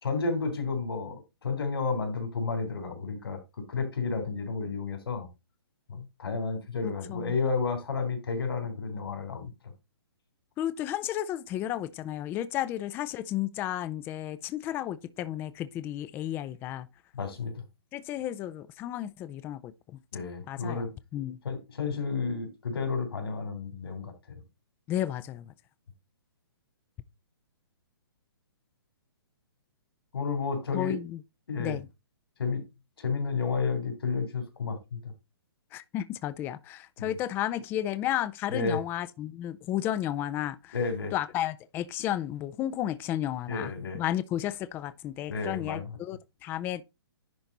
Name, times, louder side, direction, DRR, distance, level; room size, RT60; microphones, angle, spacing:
voice 1, 0.0-3.4 3.7-5.3 5.9-9.5 17.1-17.5 20.1-20.9 21.4-24.1 30.1-31.0 31.5-31.8 32.4-32.6 33.0-35.0 37.0-37.1 38.5-38.8 40.7-41.1 43.5-44.0 45.3-46.0, left 4 dB, 70° left, 3.2 m, -31 dB
voice 2, 6.8-7.3 10.6-16.9 17.9-19.7 20.5-20.9 21.1-21.4 24.9-25.4 30.7-31.2 31.6-31.9 35.7-40.8 41.1-46.8, left 12 dB, 15° left, 0.4 m, -33 dB
10.5 x 4.3 x 4.0 m
hypercardioid pair, 135°, 13 cm